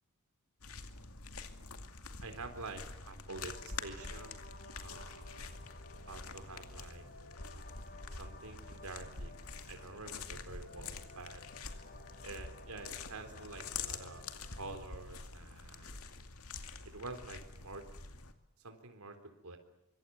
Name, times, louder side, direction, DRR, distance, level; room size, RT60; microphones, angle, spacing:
sound 1, 0.6-18.3, left 4 dB, 75° left, 2.4 m, -46 dB
voice 1, 2.2-4.4 4.8-5.6 6.1-7.0 8.1-9.3 9.7-11.4 12.2-14.2 14.6-16.0 16.8-17.8 18.6-19.2 19.4-19.6, right 3 dB, 90° right, 6 dB, 3.8 m, -47 dB
sound 2, 3.3-15.2, left 3 dB, 45° left, 4.4 m, -56 dB
25.0 x 24.5 x 9.4 m, 0.84 s
head